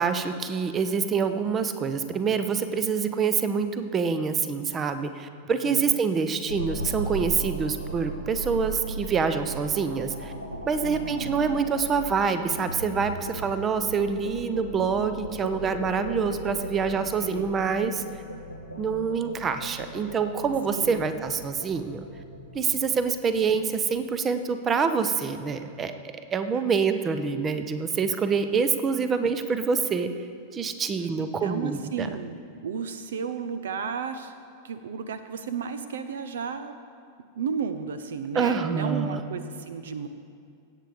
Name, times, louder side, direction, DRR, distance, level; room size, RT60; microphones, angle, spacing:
voice 1, 0.0-10.3 10.7-18.0 18.8-22.0 22.5-25.9 26.3-30.1 30.5-32.1 38.3-39.2, right 5 dB, 25° right, 10 dB, 0.8 m, -26 dB
voice 2, 5.6-6.0 10.8-11.5 17.2-17.5 20.7-21.1 26.5-26.6 31.2-34.3 34.6-36.7 37.4-40.1, right 6 dB, 60° right, 11 dB, 0.6 m, -33 dB
sound 1, 6.5-23.7, right 1 dB, 85° right, 1.1 m, -37 dB
18.0 x 8.3 x 5.1 m, 2.3 s
figure-of-eight pair, 90°, 0 cm